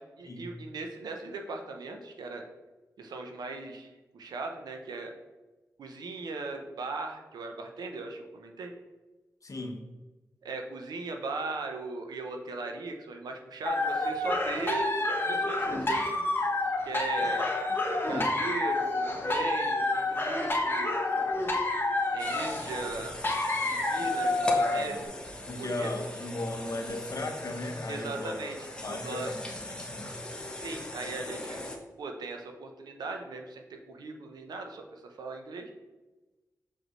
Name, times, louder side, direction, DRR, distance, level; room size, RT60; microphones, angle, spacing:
voice 1, 0.0-2.4 3.0-5.1 5.8-8.7 10.4-14.9 15.3-16.3 16.8-17.5 18.1-21.0 22.1-23.2 23.6-25.1 25.6-25.9 27.9-29.3 30.5-31.6 32.0-35.7, right 3 dB, 90° right, 4 dB, 0.8 m, -38 dB
voice 2, 9.4-9.8 17.2-17.4 25.4-28.3 28.8-29.4 29.7-30.1, left 2 dB, 55° left, 4 dB, 1.0 m, -36 dB
sound 1, 13.6-25.0, left 2 dB, 30° left, 1.3 m, -29 dB
sound 2, 22.2-31.8, left 1 dB, 15° left, 1.1 m, -40 dB
5.8 x 5.1 x 3.2 m, 1.1 s
cardioid pair, 55°, 7 cm